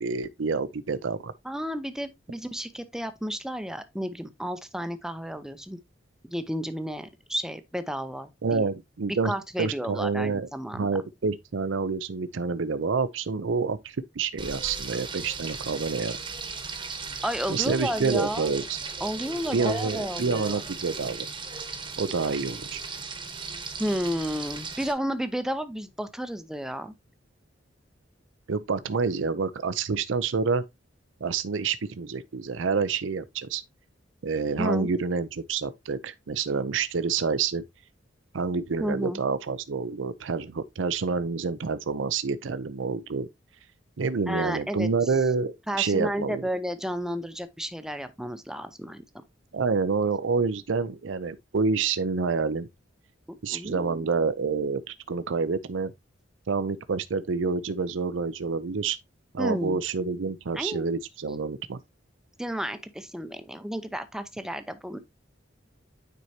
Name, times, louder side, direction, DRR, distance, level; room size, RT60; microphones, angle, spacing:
voice 1, 0.0-1.3 8.4-9.3 9.6-16.2 17.5-18.8 19.5-21.3 22.0-22.8 28.5-30.6 31.2-33.6 34.2-37.6 38.3-43.3 44.0-46.5 49.5-52.7 53.4-55.9 56.5-59.0 59.3-61.8, right 4 dB, 85° right, 0.5 m, -28 dB
voice 2, 1.4-5.8 6.2-8.6 9.2-10.9 17.2-18.6 19.0-20.6 23.8-26.9 34.6-34.9 38.8-39.2 44.3-44.9 45.7-49.0 53.3-54.1 59.4-59.8 60.5-60.9 62.4-65.0, equal, 5° right, 0.6 m, -32 dB
Frying (food), 14.4-24.9, right 5 dB, 25° right, 1.1 m, -37 dB
9.4 x 4.5 x 2.8 m
head